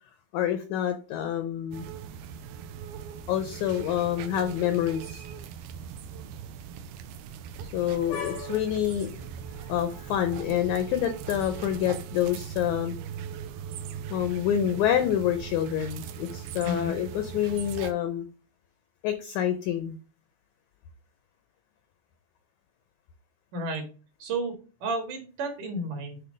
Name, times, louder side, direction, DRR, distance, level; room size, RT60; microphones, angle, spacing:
voice 1, 0.3-1.9 3.3-5.2 7.6-9.1 9.6-13.0 14.1-18.3 19.0-20.0, left 10 dB, 85° left, 8 dB, 1.6 m, -27 dB
sound 1, 1.7-17.9, right 8 dB, 85° right, 2.4 m, -40 dB
voice 2, 16.6-16.9 23.5-23.9 24.2-24.5 24.8-26.2, right 2 dB, 65° right, 4 dB, 3.0 m, -32 dB
8.2 x 3.2 x 5.0 m, 0.35 s
omnidirectional pair, 4.2 m